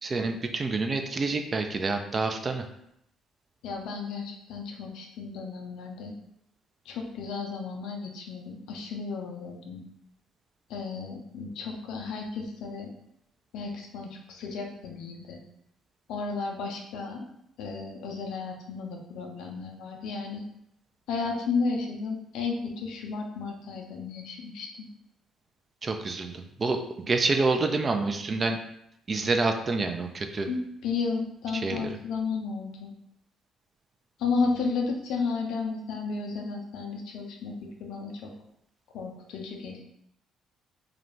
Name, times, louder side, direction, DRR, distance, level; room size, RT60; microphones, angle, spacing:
voice 1, 0.0-2.7 25.8-28.6 29.1-30.5 31.5-32.0, right 3 dB, 40° right, 5 dB, 0.3 m, -28 dB
voice 2, 3.6-6.1 6.9-9.8 10.7-12.9 13.5-15.4 16.1-17.3 17.6-20.4 21.1-24.7 30.5-32.9 34.2-38.3 38.9-39.8, left 4 dB, 70° left, 2 dB, 0.4 m, -33 dB
2.4 x 2.1 x 3.1 m, 0.76 s
hypercardioid pair, 50°, 0 cm